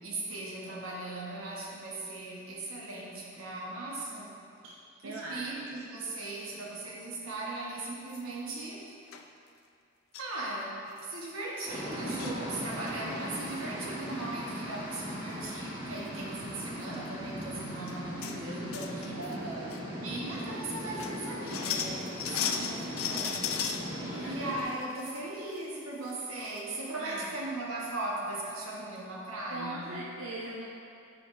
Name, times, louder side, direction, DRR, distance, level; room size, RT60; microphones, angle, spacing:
voice 1, 0.0-4.4 5.0-8.9 10.2-19.2 19.9-23.6 24.1-29.9, right 2 dB, 85° right, -4 dB, 1.1 m, -38 dB
voice 2, 5.0-5.5 19.2-19.8 22.7-22.8 24.0-24.4 27.0-27.2 29.5-30.7, right 2 dB, 70° right, -5 dB, 0.6 m, -40 dB
sound 1, 8.1-8.5 9.1-9.2 10.1-10.3 10.7-10.8 11.0-11.2 11.9-12.4 12.8-13.2 15.0-15.1 15.3-15.6 16.0-16.1 16.8-17.0 17.4-17.5 17.9-18.4 18.7-19.4 19.7-19.8 20.4-20.5 20.8-23.8 24.3-25.2 25.5-25.6 26.1-26.2 26.4-26.6, left 7 dB, 85° left, 0.4 m, -36 dB
sound 2, 11.7-24.6, equal, 20° right, 1.4 m, -39 dB
8.5 x 5.1 x 2.6 m, 2.5 s
head